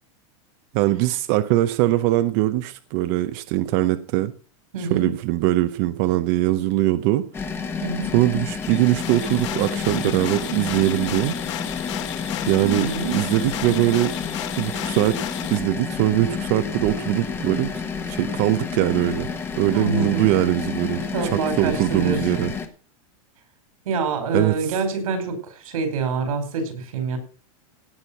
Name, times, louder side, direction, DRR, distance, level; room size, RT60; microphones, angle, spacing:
voice 1, 0.7-4.3 4.8-7.3 8.1-11.4 12.5-14.1 14.6-15.2 15.5-17.7 18.1-19.3 19.6-21.0 21.3-22.5 24.3-24.8, right 16 dB, 35° right, 11 dB, 0.6 m, -21 dB
voice 2, 4.7-5.1 7.8-8.1 12.6-13.1 19.7-20.5 21.1-22.4 23.8-27.2, right 4 dB, 85° right, 6 dB, 5.1 m, -26 dB
sound 1, 7.3-22.7, left 5 dB, 15° left, 1.1 m, -30 dB
sound 2, 8.6-15.6, left 12 dB, 55° left, 2.2 m, -33 dB
17.0 x 6.3 x 5.9 m, 0.40 s
supercardioid pair, 170°, 18 cm